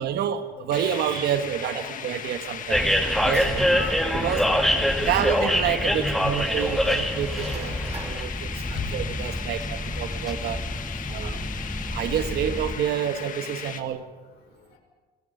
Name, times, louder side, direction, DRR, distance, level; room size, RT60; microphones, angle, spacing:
voice 1, 0.0-2.9 3.2-3.8 4.1-4.5 5.0-10.6 11.1-11.4 11.9-14.0, right 9 dB, 70° right, 9 dB, 1.6 m, -28 dB
sound 1, 0.7-13.8, left 8 dB, 50° left, 1.8 m, -37 dB
voice 2, 1.6-2.0 2.7-4.2 4.5-4.7 5.0-5.1, left 5 dB, 85° left, 3 dB, 5.6 m, -39 dB
sound 2, 2.3-4.7 5.6-5.7 6.3-8.3, right 2 dB, 40° right, 6.6 m, -42 dB
sound 3, 2.7-12.8, equal, ahead, 1.9 m, -26 dB
29.5 x 19.0 x 5.7 m, 1.4 s
cardioid pair, 110°, 17 cm